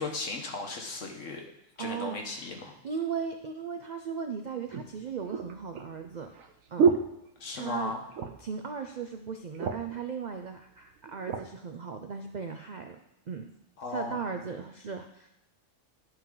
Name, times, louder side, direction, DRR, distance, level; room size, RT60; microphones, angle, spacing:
voice 1, 0.0-1.4 1.8-2.8 7.4-8.0 13.8-14.2, left 3 dB, 70° left, 2 dB, 1.5 m, -36 dB
voice 2, 1.8-6.3 6.7-6.9 7.5-7.9 8.4-13.0 13.3-13.5 13.9-15.3, right 6 dB, 60° right, 5 dB, 0.4 m, -37 dB
sound 1, 3.8-3.9 4.7-7.8 8.1-8.6 8.9-9.0 9.3-10.0 10.7-11.5 12.1-12.3, right 6 dB, 85° right, 1.2 m, -30 dB
11.0 x 4.6 x 3.8 m, 0.83 s
omnidirectional pair, 1.4 m